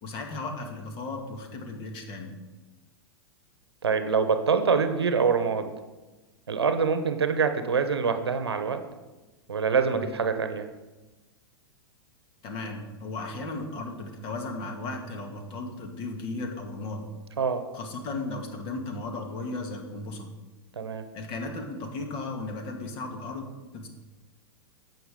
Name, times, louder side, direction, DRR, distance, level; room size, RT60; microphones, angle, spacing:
voice 1, 0.0-2.4 9.9-10.1 12.4-17.0 17.7-20.3 21.1-23.5 23.7-23.9, left 2 dB, 40° left, 3 dB, 1.9 m, -35 dB
voice 2, 3.8-5.7 6.5-8.8 9.5-10.7 17.4-17.6 20.8-21.0, right 5 dB, 80° right, 9 dB, 0.8 m, -25 dB
16.0 x 5.7 x 3.7 m, 1.2 s
figure-of-eight pair, 100°, 13 cm